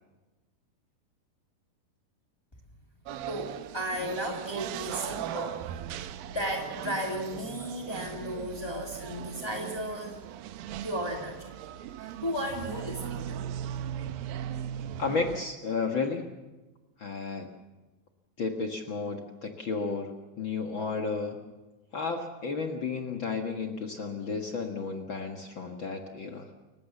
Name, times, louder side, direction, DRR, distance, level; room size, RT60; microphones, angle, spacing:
sound 1, 3.1-15.5, right 10 dB, 75° right, 2.3 m, -38 dB
voice 1, 3.3-5.6 6.0-10.2 10.8-11.5 12.0-13.4, equal, 10° left, 0 dB, 1.1 m, -35 dB
voice 2, 15.0-16.2 17.0-17.5 18.4-21.4 21.9-26.5, left 4 dB, 85° left, 3 dB, 1.0 m, -32 dB
30.0 x 16.0 x 7.1 m, 1.1 s
omnidirectional pair, 5.0 m